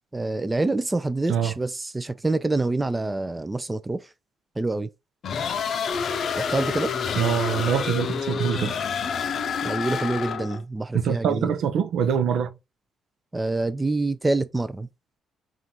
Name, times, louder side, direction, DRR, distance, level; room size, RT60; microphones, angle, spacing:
voice 1, 0.1-4.1 4.6-4.9 6.4-6.9 9.6-11.5 13.3-14.9, right 2 dB, 15° right, 0.4 m, -26 dB
sound 1, 5.2-10.6, left 6 dB, 60° left, 0.6 m, -28 dB
voice 2, 7.2-8.7 10.9-12.5, right 8 dB, 75° right, 0.6 m, -24 dB
3.7 x 2.5 x 4.3 m
cardioid pair, 90°, 0 cm